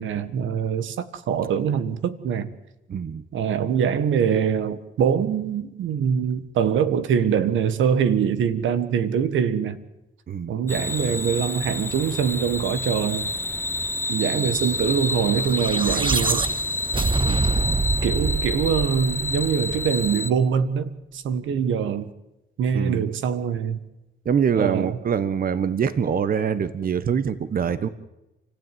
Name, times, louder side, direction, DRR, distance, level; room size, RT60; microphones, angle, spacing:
voice 1, 0.0-2.5 3.3-9.8 10.5-13.3 14.1-16.5 18.0-22.1 22.6-23.8 24.5-25.0, right 7 dB, 75° right, 1.6 m, -23 dB
voice 2, 2.9-3.3 10.3-10.5 14.3-14.5 17.2-17.4 22.7-23.0 24.2-27.9, right 7 dB, 45° right, 1.3 m, -24 dB
sound 1, 10.7-20.3, left 2 dB, 10° left, 1.1 m, -29 dB
sound 2, 15.4-19.8, right 4 dB, 25° right, 0.9 m, -25 dB
28.5 x 16.0 x 9.4 m
cardioid pair, 90°, 20 cm